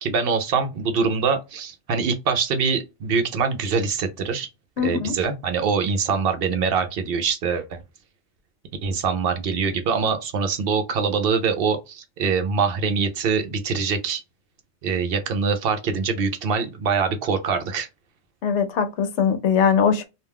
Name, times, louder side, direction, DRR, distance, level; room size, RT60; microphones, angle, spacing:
voice 1, 0.0-4.5 4.8-7.8 8.8-14.2 14.8-17.9, right 5 dB, 65° right, 0.7 m, -24 dB
voice 2, 4.8-5.1 18.4-20.0, left 7 dB, 85° left, 0.9 m, -21 dB
2.4 x 2.2 x 3.3 m
omnidirectional pair, 1.1 m